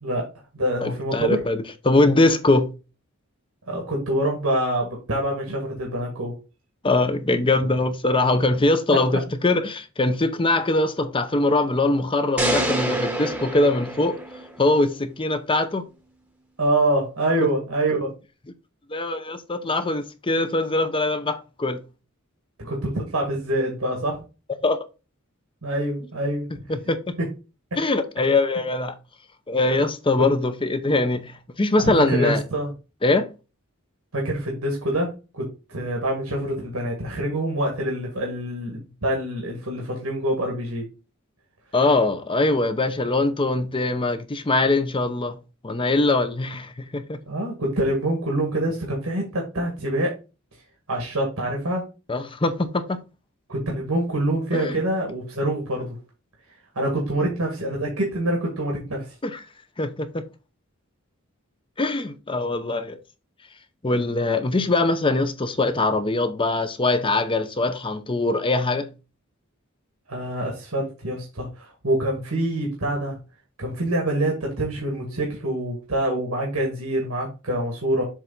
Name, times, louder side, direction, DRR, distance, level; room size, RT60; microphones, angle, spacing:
voice 1, 0.0-1.4 3.7-6.4 16.6-18.1 22.6-24.2 25.6-26.5 31.8-32.7 34.1-40.9 47.3-50.2 50.9-51.9 53.5-56.0 56.8-59.1 70.1-73.2 73.6-78.0, right 1 dB, 85° right, 1.8 m, -25 dB
voice 2, 0.8-2.7 6.8-14.2 14.6-15.8 18.9-21.8 24.6-24.8 26.7-27.2 27.8-29.0 29.5-32.4 33.0-33.3 41.7-45.4 45.6-47.2 52.1-53.0 54.5-54.8 59.2-59.4 59.8-60.2 61.8-63.0 63.8-68.9, left 2 dB, 25° left, 0.7 m, -22 dB
sound 1, 12.4-14.7, right 1 dB, 5° right, 1.0 m, -26 dB
7.3 x 3.4 x 3.9 m
head